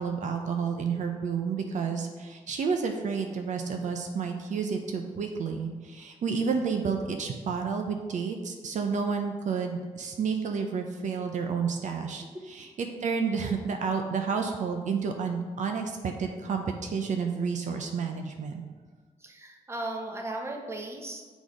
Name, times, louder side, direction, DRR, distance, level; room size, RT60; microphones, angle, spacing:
voice 1, 0.0-18.6, right 5 dB, 75° right, 4 dB, 0.6 m, -30 dB
voice 2, 19.2-21.2, right 2 dB, 20° right, 1 dB, 1.0 m, -36 dB
7.2 x 4.0 x 4.8 m, 1.4 s
cardioid pair, 100°, 13 cm